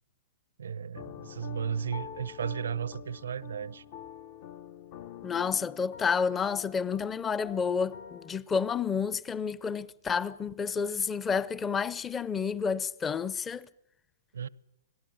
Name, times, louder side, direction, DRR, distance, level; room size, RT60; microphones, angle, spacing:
voice 1, 0.6-3.8 14.3-14.5, right 7 dB, 80° right, 0.9 m, -34 dB
sound 1, 0.9-8.4, left 9 dB, 45° left, 1.0 m, -46 dB
voice 2, 5.2-13.7, left 6 dB, 15° left, 0.8 m, -30 dB
26.0 x 18.0 x 8.7 m
hypercardioid pair, 135°, 0 cm